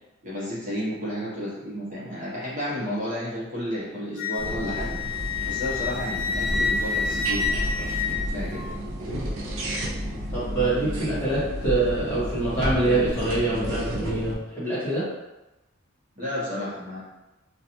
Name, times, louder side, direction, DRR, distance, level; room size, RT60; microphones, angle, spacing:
voice 1, 0.2-5.0 5.4-7.8 8.1-8.9 16.2-17.0, equal, 40° right, -8 dB, 0.8 m, -32 dB
Wind instrument woodwind instrument, 4.2-8.8, left 4 dB, 45° left, 0.3 m, -28 dB
sound 1, 4.4-14.3, equal, 80° right, 0.5 m, -31 dB
voice 2, 10.3-15.1, right 2 dB, 10° left, -11 dB, 1.1 m, -25 dB
2.4 x 2.3 x 2.9 m, 0.99 s
head